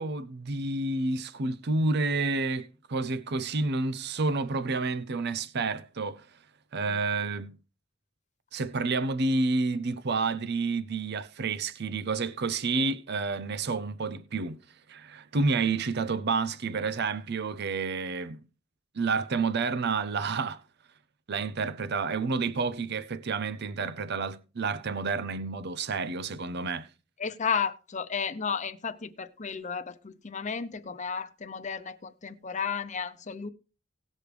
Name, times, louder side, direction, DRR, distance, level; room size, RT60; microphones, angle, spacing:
voice 1, 0.0-6.3 6.7-7.5 8.5-14.6 14.9-18.4 18.9-20.6 21.3-26.9, right 3 dB, 55° right, 0.6 m, -29 dB
voice 2, 27.2-33.5, left 6 dB, 40° left, 0.8 m, -33 dB
18.0 x 6.3 x 3.4 m
head